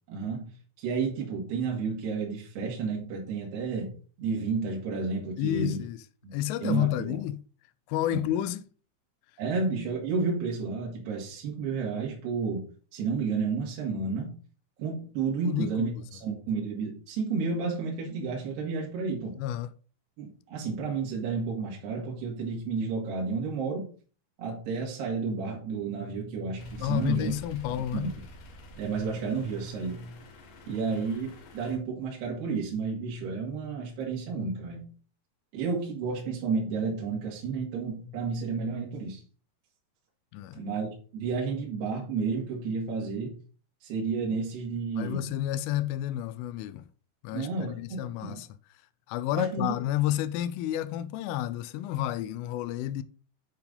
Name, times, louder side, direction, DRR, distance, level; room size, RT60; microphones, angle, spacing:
voice 1, 0.1-0.5 0.8-3.9 4.2-5.8 6.2-6.3 6.6-7.2 8.1-8.3 9.4-14.4 14.8-19.4 20.2-23.9 24.4-27.3 27.9-28.2 28.8-30.1 30.7-34.9 35.5-39.2 40.6-43.3 43.8-45.3 47.3-48.4 49.3-49.7, right 4 dB, 60° right, 4.0 m, -31 dB
voice 2, 5.4-6.0 6.3-7.4 7.9-8.6 15.5-15.9 19.4-19.7 26.8-28.1 40.3-40.6 44.9-46.8 47.2-48.5 49.1-53.0, left 13 dB, 85° left, 3.2 m, -30 dB
sound 1, 26.6-31.8, equal, 65° left, 2.3 m, -48 dB
9.7 x 4.7 x 5.3 m
omnidirectional pair, 5.6 m